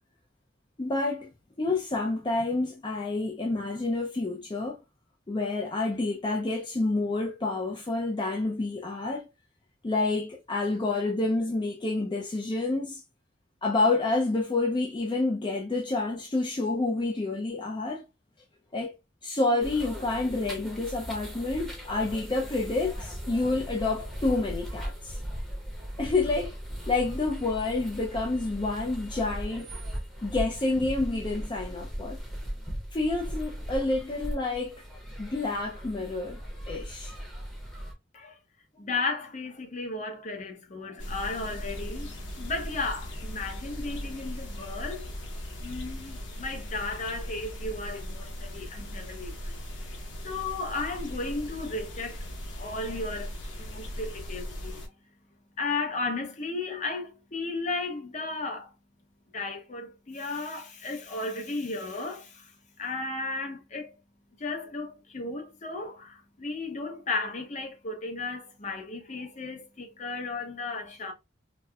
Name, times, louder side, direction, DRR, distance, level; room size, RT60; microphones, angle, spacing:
voice 1, 0.8-1.3 1.6-4.8 5.3-9.3 9.8-13.0 13.6-18.0 18.7-18.9 19.2-25.2 26.0-26.5 26.9-29.7 30.2-32.2 32.9-34.8 35.2-36.4 36.7-37.2, left 2 dB, 25° left, 0.4 m, -28 dB
sound 1, 19.6-37.9, equal, ahead, 0.8 m, -38 dB
voice 2, 38.7-45.1 45.6-49.6 50.2-52.3 52.6-54.8 55.6-58.7 59.3-62.5 62.8-63.9 64.4-71.1, left 3 dB, 40° left, 0.8 m, -34 dB
sound 2, 41.0-54.9, equal, 90° left, 0.9 m, -38 dB
4.1 x 2.1 x 2.3 m
head